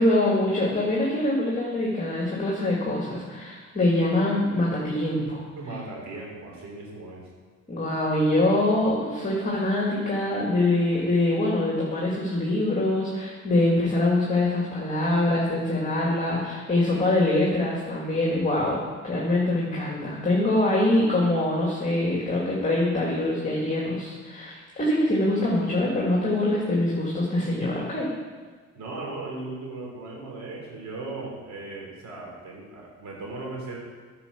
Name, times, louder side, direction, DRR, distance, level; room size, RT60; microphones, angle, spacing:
voice 1, 0.0-5.4 7.7-28.1, left 1 dB, 25° left, -4 dB, 2.4 m, -24 dB
voice 2, 5.6-7.3 28.8-33.8, right 2 dB, 70° right, -1 dB, 3.4 m, -37 dB
9.7 x 5.9 x 6.9 m, 1.5 s
cardioid pair, 90°, 30 cm